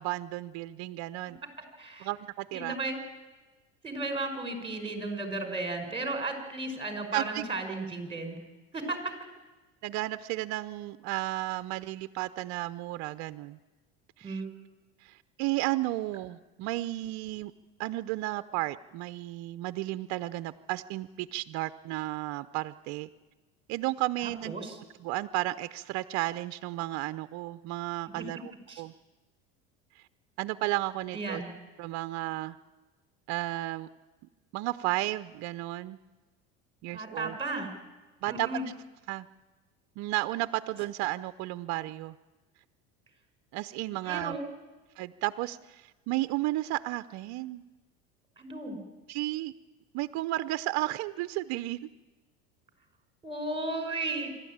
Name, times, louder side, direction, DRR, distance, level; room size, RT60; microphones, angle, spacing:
voice 1, 0.0-1.4 2.0-2.8 7.1-7.4 9.8-13.6 14.2-14.4 15.0-17.5 17.8-23.1 23.7-24.6 25.0-28.5 28.8-28.9 30.0-30.1 30.4-31.4 31.8-32.6 33.3-33.9 34.5-36.0 36.8-37.4 38.2-38.5 39.1-39.3 40.0-42.1 43.5-44.4 45.0-47.6 49.1-49.5 49.9-51.8, right 18 dB, 60° right, 12 dB, 0.7 m, -33 dB
voice 2, 1.8-2.1 2.5-3.0 3.8-8.4 8.7-9.0 14.2-14.5 24.4-24.8 28.1-28.3 28.7-28.8 31.1-31.5 36.9-37.7 38.3-38.6 44.0-44.4 48.4-48.8 53.2-54.3, right 2 dB, 15° right, 5 dB, 5.0 m, -34 dB
25.5 x 12.5 x 8.8 m, 1.2 s
supercardioid pair, 95°, 32 cm